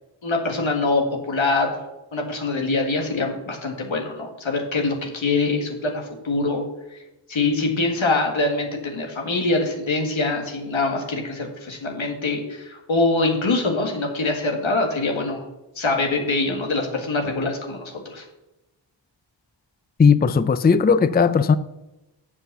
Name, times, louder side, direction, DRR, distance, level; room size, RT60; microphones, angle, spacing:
voice 1, 0.2-1.8 2.1-6.6 6.9-7.0 7.3-15.5 15.8-18.3, left 3 dB, 90° left, 2.0 m, -24 dB
voice 2, 20.0-21.6, left 5 dB, 20° left, 0.4 m, -17 dB
8.0 x 7.2 x 6.8 m
wide cardioid pair, 80°, 46 cm